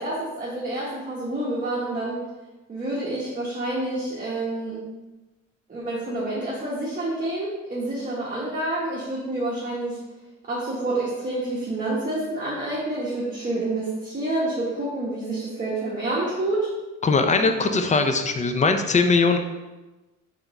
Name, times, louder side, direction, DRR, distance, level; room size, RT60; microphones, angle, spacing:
voice 1, 0.0-2.2 2.7-4.8 5.7-10.0 10.5-16.7, right 2 dB, 25° right, -6 dB, 1.1 m, -28 dB
voice 2, 17.0-19.4, left 4 dB, 25° left, 7 dB, 0.5 m, -20 dB
3.6 x 3.5 x 4.1 m, 1.1 s
cardioid pair, 90°, 30 cm